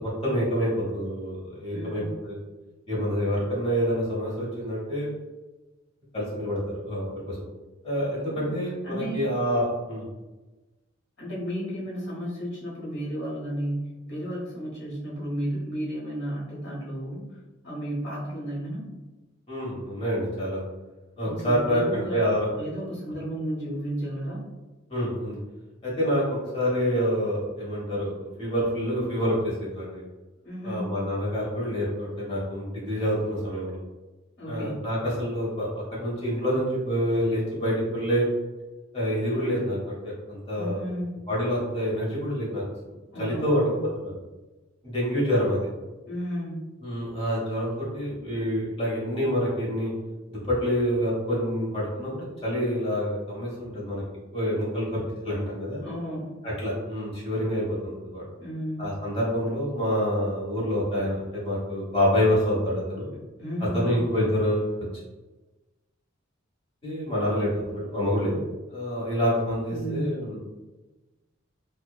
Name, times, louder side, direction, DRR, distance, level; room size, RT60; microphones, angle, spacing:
voice 1, 0.0-2.4 2.9-5.1 6.1-7.4 7.8-10.0 19.5-20.6 21.2-22.5 24.9-25.4 25.8-26.2 26.5-30.0 30.6-33.8 34.5-38.3 38.9-40.8 41.3-42.6 43.2-43.7 44.0-44.1 44.8-45.7 46.8-49.9 50.3-54.0 54.3-55.8 56.4-58.2 58.8-63.1 63.7-64.7 66.8-68.4 68.7-70.4, equal, 30° left, -6 dB, 1.0 m, -27 dB
voice 2, 1.7-2.1 8.3-9.3 11.2-17.2 17.6-18.9 21.2-22.2 22.5-24.4 30.4-30.9 34.4-34.9 40.5-41.1 43.1-43.8 46.1-46.7 55.8-56.4 58.4-58.8 63.1-64.0 69.6-70.2, equal, 60° left, -6 dB, 1.2 m, -33 dB
2.9 x 2.1 x 2.3 m, 1.2 s
head